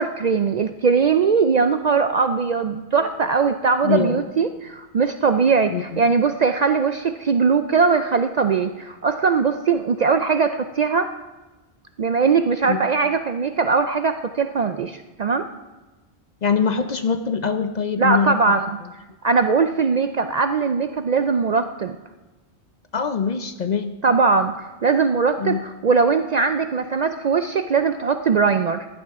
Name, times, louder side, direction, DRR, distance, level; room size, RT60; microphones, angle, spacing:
voice 1, 0.0-11.1 12.0-15.5 18.0-18.7 19.2-22.0 24.0-28.9, right 5 dB, 55° right, 8 dB, 0.5 m, -20 dB
voice 2, 3.8-4.2 5.7-6.0 12.7-12.8 16.4-18.6 22.9-24.0 25.4-25.6, left 6 dB, 50° left, 8 dB, 0.6 m, -23 dB
16.0 x 11.5 x 3.6 m, 1.1 s
omnidirectional pair, 1.1 m